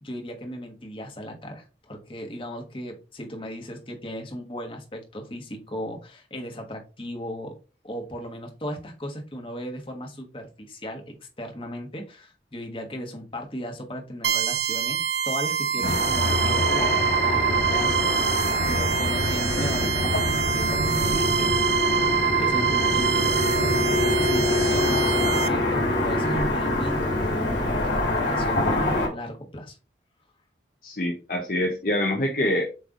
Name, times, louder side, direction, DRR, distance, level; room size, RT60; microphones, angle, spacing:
voice 1, 0.0-7.6 7.8-18.1 18.7-21.5 22.4-29.8, equal, 30° left, 2 dB, 1.4 m, -36 dB
sound 1, 14.2-25.5, right 7 dB, 70° right, 0.7 m, -25 dB
Car passing by / Traffic noise roadway noise, 15.8-29.1, left 2 dB, 80° left, 2.6 m, -25 dB
voice 2, 30.8-32.7, left 1 dB, 50° left, 1 dB, 0.9 m, -26 dB
7.8 x 3.3 x 3.8 m, 0.32 s
head